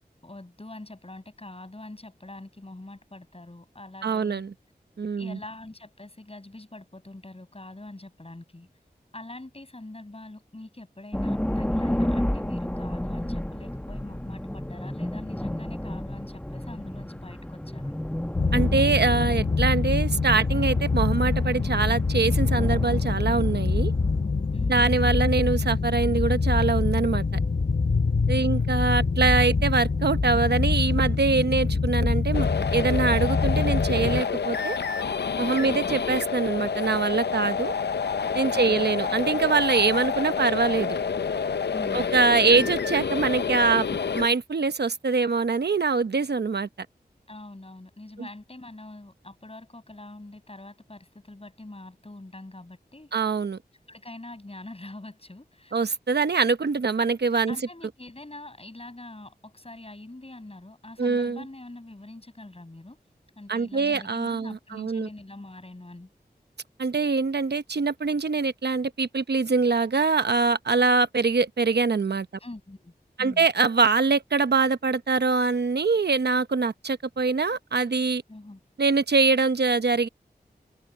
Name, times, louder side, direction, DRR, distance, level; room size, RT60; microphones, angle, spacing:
voice 1, 0.2-4.4 5.2-8.7 9.1-18.0 24.5-24.9 28.3-28.6 35.6-35.8 37.4-37.5 38.5-38.8 41.7-42.1 47.3-53.1 53.9-55.8 57.5-63.0 63.4-66.1 72.4-72.9 73.2-73.5 78.3-78.6, left 2 dB, 35° left, 6.9 m, -44 dB
voice 2, 4.0-4.5 5.0-5.4 18.5-23.9 24.7-27.2 28.3-34.8 35.4-37.7 38.3-41.0 41.9-43.9 44.1-46.7 48.2-48.3 53.1-53.6 55.7-57.5 61.0-61.4 63.5-65.1 66.8-72.3 73.2-78.2 78.8-80.1, right 4 dB, 80° right, 0.9 m, -24 dB
sound 1, 11.1-25.4, left 1 dB, 10° left, 1.2 m, -32 dB
sound 2, 18.3-34.2, left 4 dB, 55° left, 1.1 m, -25 dB
sound 3, 32.3-44.3, left 6 dB, 90° left, 0.7 m, -28 dB
cardioid pair, 45°, 17 cm